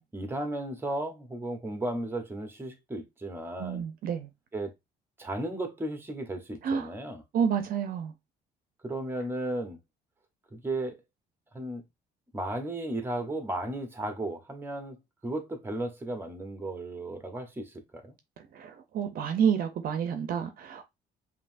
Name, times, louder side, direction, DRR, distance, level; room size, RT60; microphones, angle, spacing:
voice 1, 0.1-3.8 4.5-4.7 5.2-7.2 8.8-9.8 10.5-11.0 11.5-11.8 12.3-15.0 15.2-18.1, right 1 dB, 15° right, 1.0 m, -34 dB
voice 2, 3.6-4.3 6.6-6.9 7.3-8.1 18.5-20.9, right 7 dB, 60° right, 0.7 m, -29 dB
5.4 x 2.8 x 2.6 m
cardioid pair, 110°, 17 cm